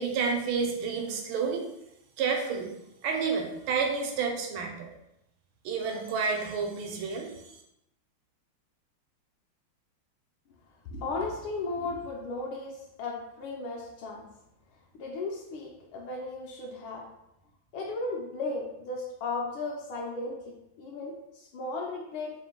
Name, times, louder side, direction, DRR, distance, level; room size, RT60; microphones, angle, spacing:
voice 1, 0.0-1.6 2.2-2.7 3.0-4.9 5.6-7.3, right 5 dB, 75° right, 2 dB, 1.4 m, -30 dB
voice 2, 10.9-14.3 14.9-17.0 17.7-22.3, left 3 dB, 80° left, -1 dB, 1.4 m, -35 dB
3.8 x 2.5 x 3.6 m, 0.84 s
omnidirectional pair, 2.3 m